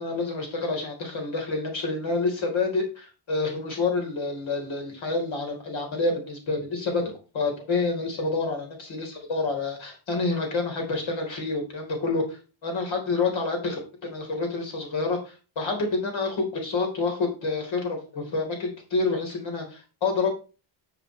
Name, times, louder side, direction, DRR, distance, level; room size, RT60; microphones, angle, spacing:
voice 1, 0.0-20.3, left 3 dB, 65° left, 2 dB, 3.9 m, -28 dB
10.5 x 6.8 x 3.2 m, 0.33 s
wide cardioid pair, 155°, 49 cm